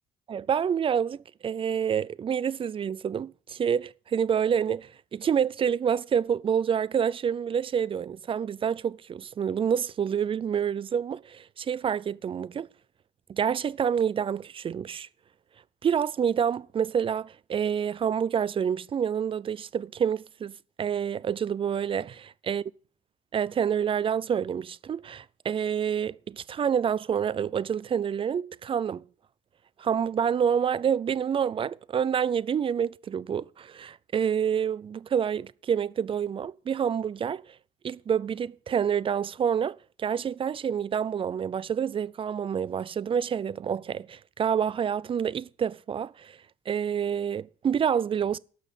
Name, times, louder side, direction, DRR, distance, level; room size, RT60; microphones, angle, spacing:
voice 1, 0.3-12.7 13.3-15.1 15.8-22.6 23.3-29.0 29.8-37.4 37.8-46.4 46.7-48.4, right 8 dB, 30° right, 0.4 m, -28 dB
12.0 x 6.2 x 7.3 m
cardioid pair, 110°, 17 cm